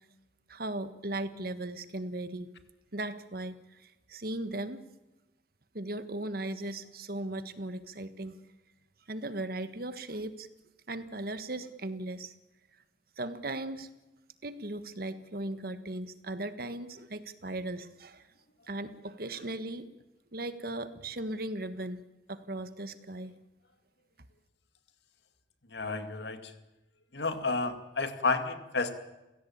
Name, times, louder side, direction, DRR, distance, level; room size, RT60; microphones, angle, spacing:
voice 1, 0.5-2.5 2.9-4.8 5.7-8.4 9.1-10.5 10.9-12.3 13.2-13.9 14.4-18.2 18.7-19.9 20.3-22.0 22.3-23.3, right 1 dB, 55° right, 11 dB, 1.5 m, -37 dB
voice 2, 25.7-26.4 27.1-28.9, left 3 dB, 75° left, 8 dB, 2.3 m, -31 dB
29.5 x 16.5 x 8.7 m, 1.0 s
head